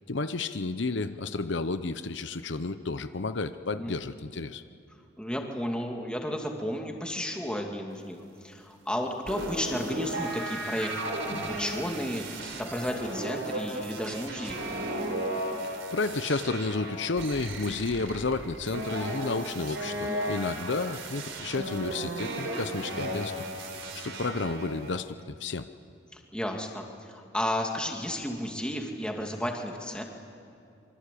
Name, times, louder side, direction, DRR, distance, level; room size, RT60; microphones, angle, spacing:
voice 1, 0.1-4.6 15.9-23.4 24.0-25.7, left 3 dB, 70° left, 11 dB, 0.8 m, -31 dB
voice 2, 5.2-14.6 26.1-30.0, equal, 5° left, 2 dB, 2.4 m, -33 dB
sound 1, 9.3-25.0, right 1 dB, 85° right, 3.9 m, -35 dB
26.0 x 25.0 x 8.5 m, 2.7 s
head